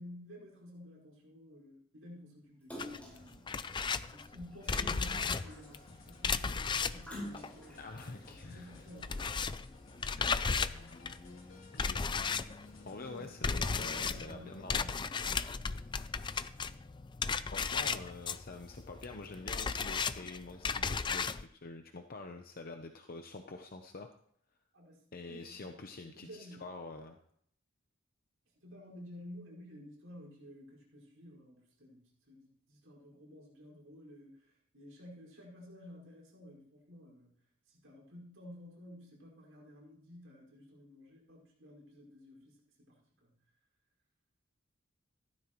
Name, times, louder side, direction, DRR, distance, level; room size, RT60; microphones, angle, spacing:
voice 1, 0.0-3.8 4.1-9.3 13.0-15.5 24.7-26.7 28.6-37.3 37.7-43.3, left 1 dB, 75° right, -4 dB, 5.1 m, -53 dB
Splash splatter, 2.7-3.3 4.6-5.9 7.0-7.8 8.4-8.5, left 1 dB, 5° left, 5.0 m, -46 dB
sound 1, 2.8-8.3 8.6-21.4, left 5 dB, 25° left, 0.4 m, -35 dB
sound 2, 5.0-13.0, left 2 dB, 85° left, 3.0 m, -58 dB
voice 2, 7.8-8.7 11.7-12.3 12.9-14.9 17.5-24.1 25.1-27.2, left 3 dB, 50° left, 5 dB, 0.8 m, -47 dB
15.5 x 13.0 x 3.1 m, 0.67 s
head